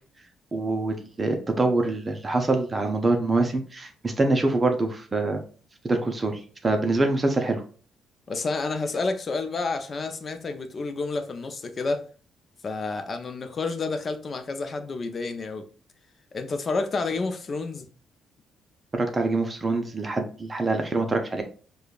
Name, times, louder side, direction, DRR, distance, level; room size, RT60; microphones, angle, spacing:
voice 1, 0.5-5.4 5.8-7.6 18.9-21.4, right 2 dB, 25° right, 0.6 m, -25 dB
voice 2, 8.3-12.0 12.6-15.7 16.3-17.9, left 3 dB, 40° left, 0.6 m, -29 dB
4.9 x 2.3 x 2.3 m
cardioid pair, 90°, 0 cm